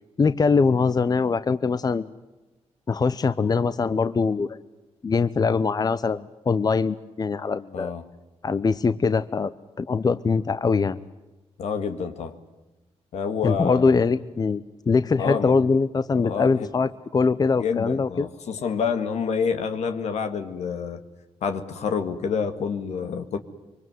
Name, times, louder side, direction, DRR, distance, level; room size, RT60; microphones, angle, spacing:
voice 1, 0.2-2.1 2.9-4.6 5.0-7.9 8.4-9.5 9.8-11.0 13.4-18.3, left 4 dB, 35° left, 14 dB, 0.8 m, -22 dB
voice 2, 11.6-12.4 13.1-14.0 15.1-15.5 16.1-16.7 17.6-21.0 21.4-23.4, left 6 dB, 85° left, 8 dB, 2.0 m, -28 dB
25.0 x 23.5 x 9.5 m, 1.0 s
cardioid pair, 95°, 11 cm